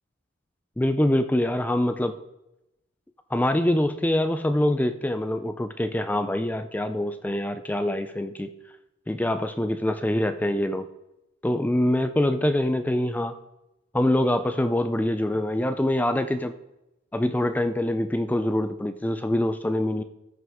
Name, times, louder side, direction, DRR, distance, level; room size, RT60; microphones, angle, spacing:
voice 1, 0.8-2.2 3.3-8.5 9.1-10.9 11.4-13.4 13.9-16.5 17.1-20.0, left 1 dB, 10° left, 10 dB, 0.3 m, -24 dB
14.0 x 6.1 x 3.5 m, 0.91 s
head